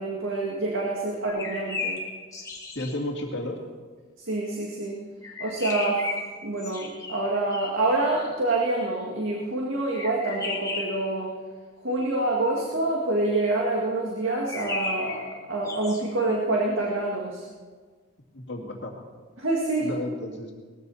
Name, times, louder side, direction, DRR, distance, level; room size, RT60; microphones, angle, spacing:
voice 1, 0.0-2.0 4.3-5.0 5.4-6.0 6.4-11.3 11.8-17.4 19.4-19.9, right 2 dB, 90° right, -2 dB, 2.1 m, -27 dB
sound 1, 1.3-2.9 5.2-7.9 9.9-11.1 14.3-16.0, left 3 dB, 15° left, 1.8 m, -34 dB
voice 2, 2.8-3.6 18.3-19.0 19.8-20.5, left 1 dB, 65° left, 0 dB, 2.3 m, -32 dB
19.5 x 14.5 x 4.2 m, 1.5 s
head